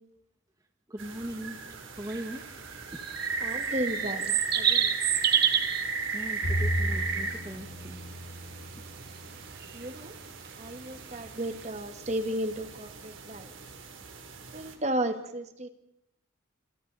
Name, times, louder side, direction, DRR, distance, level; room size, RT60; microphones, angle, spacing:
voice 1, 0.9-1.6 2.0-2.4 2.9-3.0 6.1-8.0, right 1 dB, 15° right, 5 dB, 1.5 m, -39 dB
sound 1, 1.0-14.7, right 4 dB, 75° right, 3.4 m, -37 dB
sound 2, 2.1-2.2 3.0-5.8 9.6-9.8 10.4-10.5 11.6-11.7, right 9 dB, 50° right, 1.8 m, -26 dB
voice 2, 3.4-4.9 9.7-10.1 10.6-13.5 14.5-15.7, right 1 dB, 35° right, 8 dB, 1.8 m, -34 dB
Bowed string instrument, 6.4-9.8, equal, 80° left, 6.0 m, -34 dB
28.0 x 23.5 x 4.1 m, 0.83 s
head